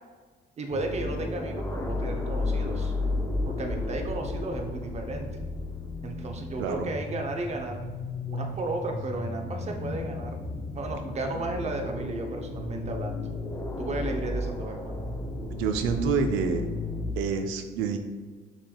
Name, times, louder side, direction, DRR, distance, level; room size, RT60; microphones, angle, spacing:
voice 1, 0.6-2.9 3.4-5.3 6.0-7.9 8.3-10.5 10.7-13.3 13.8-15.0, right 2 dB, 35° right, 3 dB, 0.7 m, -34 dB
sound 1, 0.7-17.1, left 2 dB, 15° left, 0.5 m, -33 dB
voice 2, 6.6-6.9 15.6-16.7 17.1-18.0, right 5 dB, 85° right, 6 dB, 0.5 m, -27 dB
6.0 x 3.3 x 2.3 m, 1.5 s
cardioid pair, 100°, 20 cm